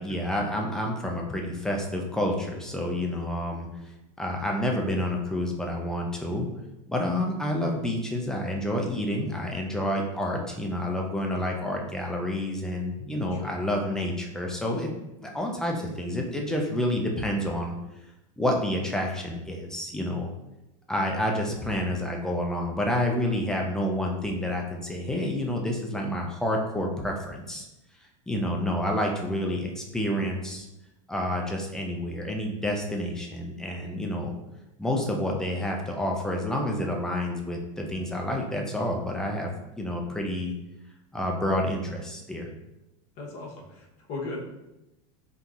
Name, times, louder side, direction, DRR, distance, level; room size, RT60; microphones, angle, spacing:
voice 1, 0.0-3.7 4.2-6.5 6.9-14.9 15.2-17.8 18.4-20.3 20.9-27.7 28.3-30.7 31.1-34.3 34.8-39.5 39.8-40.5 41.1-42.5, left 1 dB, 5° left, 0 dB, 0.4 m, -29 dB
voice 2, 43.2-44.4, left 3 dB, 45° left, -2 dB, 0.9 m, -37 dB
3.7 x 2.8 x 2.4 m, 0.93 s
supercardioid pair, 135°, 17 cm